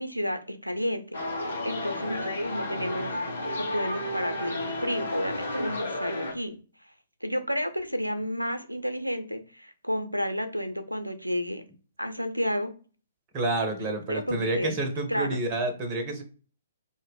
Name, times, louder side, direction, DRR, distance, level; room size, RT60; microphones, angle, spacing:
voice 1, 0.0-6.6 7.2-11.6 12.0-12.7 14.1-14.7 15.1-15.4, equal, 90° right, 8 dB, 0.4 m, -31 dB
sound 1, 1.1-6.3, left 1 dB, 65° left, 0.7 m, -32 dB
voice 2, 13.3-16.2, right 2 dB, 30° right, 6 dB, 0.5 m, -29 dB
2.0 x 2.0 x 3.2 m, 0.39 s
figure-of-eight pair, 120°, 0 cm